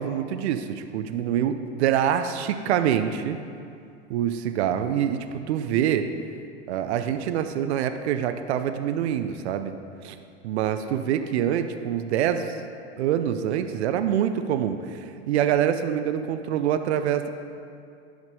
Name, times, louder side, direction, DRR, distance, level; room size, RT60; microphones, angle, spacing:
voice 1, 0.0-3.4 4.1-6.1 6.7-9.7 10.0-10.2 10.4-12.6 13.0-17.3, right 9 dB, 75° right, 9 dB, 0.7 m, -25 dB
11.0 x 5.2 x 5.3 m, 2.4 s
hypercardioid pair, 95°, 33 cm